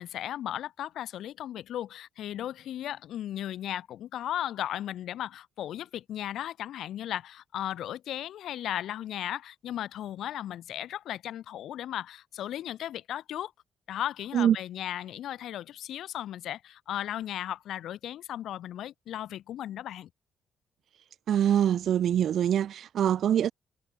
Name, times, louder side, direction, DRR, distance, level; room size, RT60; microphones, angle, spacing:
voice 1, 0.0-13.5 13.9-20.1, left 12 dB, 75° left, 7.0 m, -36 dB
voice 2, 21.3-23.5, right 10 dB, 65° right, 0.4 m, -24 dB
cardioid pair, 90°, 0 cm